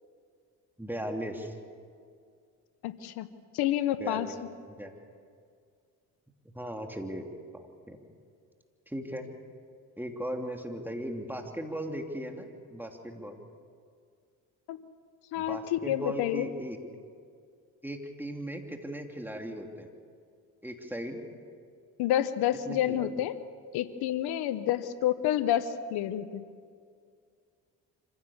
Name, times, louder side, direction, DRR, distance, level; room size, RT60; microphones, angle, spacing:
voice 1, 0.8-1.5 4.0-4.3 4.7-4.9 6.4-7.3 7.5-8.0 8.9-9.3 10.0-13.4 15.3-16.8 17.8-19.9 20.6-21.2 22.6-23.1, equal, 5° right, 3 dB, 3.0 m, -37 dB
voice 2, 2.8-3.3 3.5-4.3 14.7-14.8 15.3-16.5 22.0-23.4 23.7-26.4, left 11 dB, 90° left, 14 dB, 0.9 m, -29 dB
26.0 x 16.0 x 7.2 m, 2.2 s
supercardioid pair, 65°, 38 cm